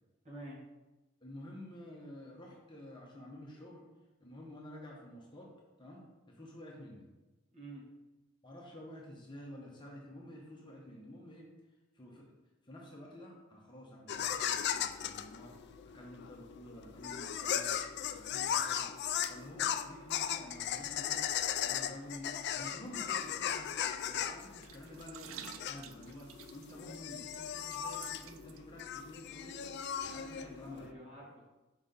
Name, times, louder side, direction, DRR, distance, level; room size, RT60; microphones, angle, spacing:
voice 1, 0.2-0.6 7.5-7.8 30.4-31.5, right 1 dB, 35° right, -5 dB, 1.9 m, -49 dB
voice 2, 1.2-3.8 4.2-5.5 5.8-7.1 8.4-11.5 11.9-12.3 12.6-17.7 18.1-18.9 19.3-21.2 21.6-23.7 24.1-29.7 30.1-30.9, left 1 dB, 25° left, -2 dB, 0.9 m, -50 dB
sound 1, 14.1-30.9, left 9 dB, 55° left, 0.3 m, -37 dB
sound 2, 24.6-28.8 29.1-29.3, right 9 dB, 80° right, 0.4 m, -52 dB
5.5 x 4.9 x 3.9 m, 1.1 s
head